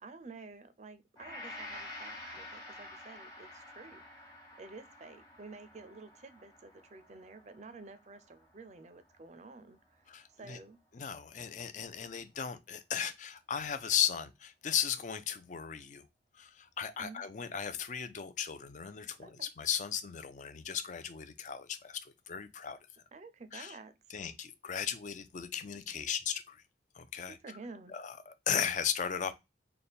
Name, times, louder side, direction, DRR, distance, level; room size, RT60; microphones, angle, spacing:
voice 1, 0.0-4.0 4.6-9.8 10.4-10.8 16.9-17.2 19.2-19.5 23.1-23.9 27.4-28.0, right 3 dB, 40° right, 0.5 m, -50 dB
Gong, 1.2-9.5 9.9-10.1, left 1 dB, 20° left, 1.1 m, -49 dB
voice 2, 10.1-10.6 10.9-16.0 16.4-22.8 23.5-23.7 24.1-26.6 27.0-27.4 27.9-29.3, left 8 dB, 45° left, 0.4 m, -36 dB
3.4 x 2.2 x 4.0 m
head